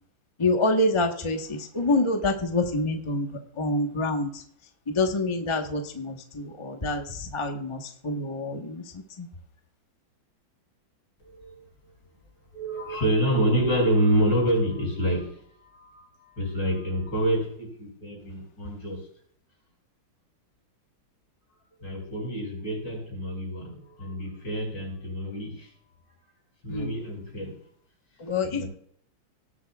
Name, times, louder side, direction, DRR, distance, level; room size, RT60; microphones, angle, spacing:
voice 1, 0.4-3.3 3.6-4.4 4.9-8.8 9.2-9.3 26.7-26.9 28.2-28.6, left 2 dB, 20° left, 4 dB, 0.8 m, -26 dB
voice 2, 11.2-11.6 12.5-19.1 21.8-25.7 26.6-27.6 28.2-28.7, right 1 dB, 60° left, -2 dB, 6.3 m, -27 dB
18.5 x 8.2 x 2.3 m, 0.63 s
omnidirectional pair, 2.2 m